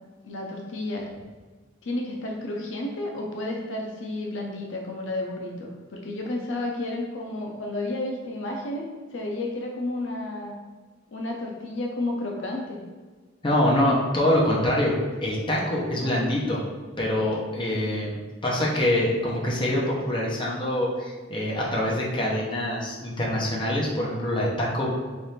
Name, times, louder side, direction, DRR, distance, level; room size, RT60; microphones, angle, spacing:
voice 1, 0.2-1.1 1.8-10.6 11.1-12.8 15.9-16.3, left 2 dB, 70° left, 0 dB, 0.6 m, -32 dB
voice 2, 13.4-16.6 17.0-18.2 18.4-24.9, left 1 dB, 25° left, -4 dB, 0.7 m, -25 dB
3.4 x 2.5 x 4.2 m, 1.4 s
head